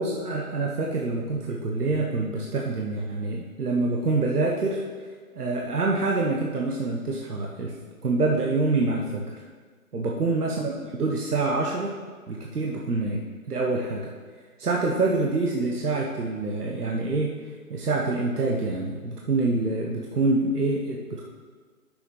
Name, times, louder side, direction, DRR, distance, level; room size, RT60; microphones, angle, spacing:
voice 1, 0.0-4.8 5.3-7.7 8.0-9.3 9.9-11.9 12.3-14.1 14.6-17.3 17.7-21.3, right 3 dB, 85° right, -1 dB, 1.3 m, -26 dB
9.3 x 6.8 x 3.9 m, 1.5 s
hypercardioid pair, 165°, 45 cm